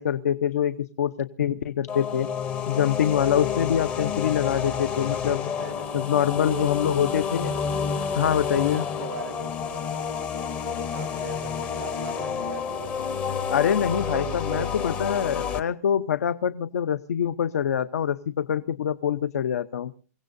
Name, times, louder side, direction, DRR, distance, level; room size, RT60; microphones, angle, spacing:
voice 1, 0.0-2.3 2.7-5.5 5.9-7.6 8.1-8.8 13.5-19.9, left 9 dB, 70° left, 13 dB, 0.7 m, -25 dB
sound 1, 1.9-15.6, left 7 dB, 15° left, 0.7 m, -29 dB
voice 2, 5.5-6.7 8.1-10.0 10.7-13.1 13.7-14.9, right 8 dB, 80° right, 14 dB, 0.8 m, -40 dB
29.0 x 16.5 x 2.6 m, 0.38 s
hypercardioid pair, 170°, 9 cm